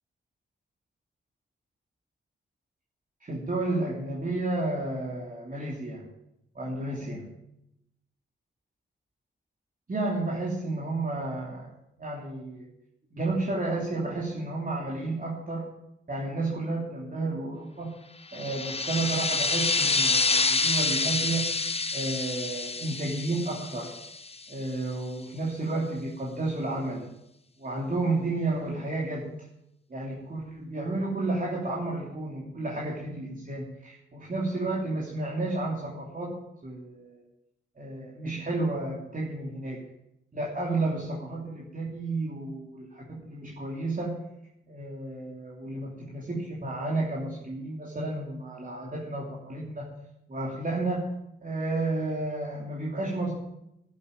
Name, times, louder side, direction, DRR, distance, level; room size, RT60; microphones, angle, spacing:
voice 1, 3.2-6.1 6.5-7.2 9.9-12.7 13.1-15.7 16.1-18.0 18.3-21.5 21.9-23.9 24.5-27.1 27.6-29.3 29.9-36.4 36.6-37.2 37.8-39.8 40.3-44.2 44.6-49.9 50.3-51.1 51.4-53.3, right 2 dB, 40° right, -3 dB, 3.1 m, -32 dB
sound 1, 18.3-24.6, left 3 dB, 30° left, 1.1 m, -27 dB
11.0 x 8.4 x 9.8 m, 0.82 s
cardioid pair, 65°, 21 cm